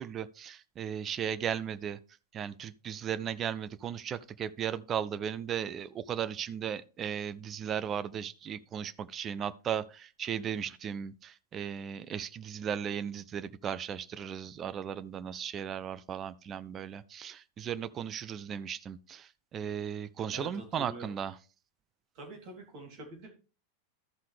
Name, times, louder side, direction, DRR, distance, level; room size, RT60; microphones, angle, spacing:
voice 1, 0.0-2.0 2.3-21.4, right 8 dB, 25° right, 0.5 m, -36 dB
voice 2, 20.3-21.1 22.1-23.3, right 1 dB, 45° right, 3.1 m, -45 dB
13.5 x 5.6 x 3.3 m
figure-of-eight pair, 90°, 0 cm